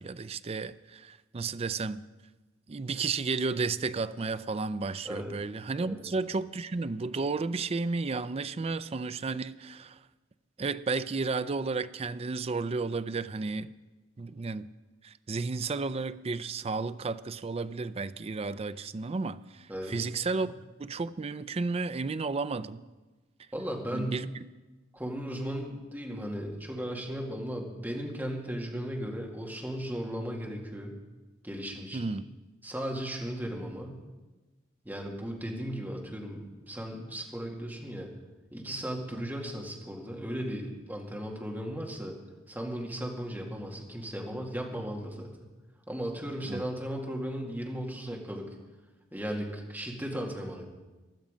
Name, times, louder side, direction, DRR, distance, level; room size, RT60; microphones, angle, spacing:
voice 1, 0.0-2.0 2.7-10.0 10.6-13.7 14.2-14.7 15.0-20.5 20.8-22.8 23.9-24.3 31.9-32.2 39.1-39.2 46.5-46.6, right 4 dB, 30° right, 0.4 m, -33 dB
voice 2, 23.5-24.2 24.9-30.9 31.4-32.1 32.6-34.0 34.8-38.1 38.5-42.1 42.5-45.3 45.9-48.4 49.1-50.7, equal, 10° right, 2.1 m, -36 dB
16.0 x 12.0 x 5.1 m
head